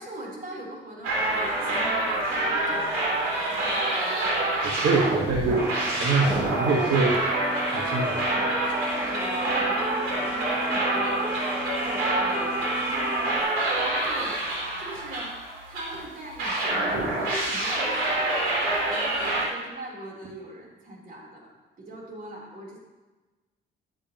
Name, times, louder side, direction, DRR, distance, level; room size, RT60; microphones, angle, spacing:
voice 1, 0.0-3.8 7.7-11.5 11.8-15.4 15.7-22.8, right 1 dB, 45° right, -2 dB, 3.6 m, -41 dB
sound 1, 1.0-16.0 16.4-19.4, right 2 dB, 90° right, 3.2 m, -27 dB
voice 2, 4.6-8.1, right 4 dB, 65° right, -2 dB, 1.4 m, -25 dB
sound 2, 5.6-13.4, right 1 dB, 10° right, 1.5 m, -34 dB
14.0 x 8.3 x 3.0 m, 1.2 s
cardioid pair, 90°, 20 cm